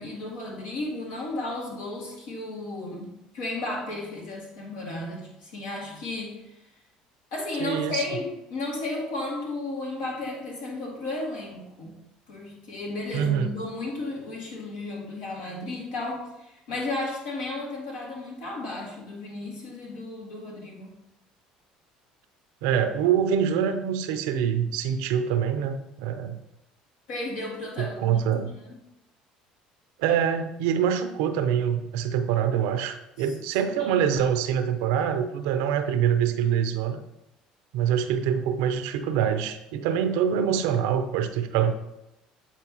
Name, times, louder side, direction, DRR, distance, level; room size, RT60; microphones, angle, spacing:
voice 1, 0.0-6.6 7.3-12.0 12.3-21.0 27.1-28.8 33.2-33.3 33.8-34.0, left 2 dB, 75° left, -3 dB, 2.1 m, -34 dB
voice 2, 7.6-8.0 13.1-13.5 22.6-26.4 27.8-28.5 30.0-37.0 37.7-41.7, right 8 dB, 75° right, 10 dB, 0.5 m, -25 dB
8.1 x 4.5 x 2.9 m, 0.90 s
hypercardioid pair, 65°, 3 cm